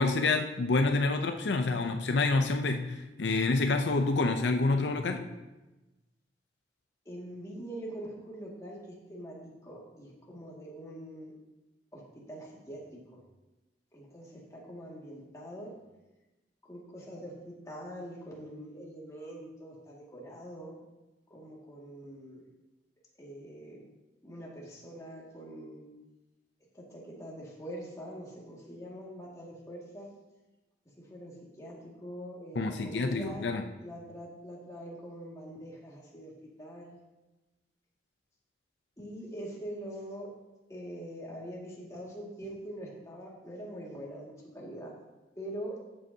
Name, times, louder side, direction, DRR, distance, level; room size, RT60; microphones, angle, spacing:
voice 1, 0.0-5.3 32.5-33.7, left 3 dB, 75° left, 5 dB, 0.6 m, -28 dB
voice 2, 7.1-11.3 11.9-13.2 13.9-15.7 16.7-20.8 21.3-22.4 23.2-23.8 24.2-25.9 26.7-30.1 31.0-33.5 33.8-36.3 36.6-37.0 39.0-40.3 40.7-44.9 45.4-45.8, equal, 20° left, -4 dB, 2.0 m, -44 dB
13.5 x 7.7 x 2.8 m, 1.1 s
head